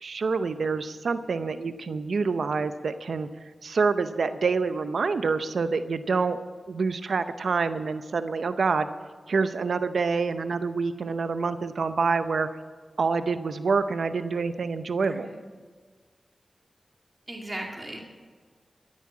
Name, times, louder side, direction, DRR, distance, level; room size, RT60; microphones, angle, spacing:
voice 1, 0.0-3.3 3.6-6.4 6.7-8.9 9.3-12.5 13.0-15.3, right 4 dB, 85° right, 11 dB, 0.7 m, -27 dB
voice 2, 15.0-15.4 17.3-18.0, right 1 dB, 35° right, 0 dB, 2.3 m, -37 dB
14.5 x 9.7 x 7.3 m, 1.5 s
cardioid pair, 50°, 0 cm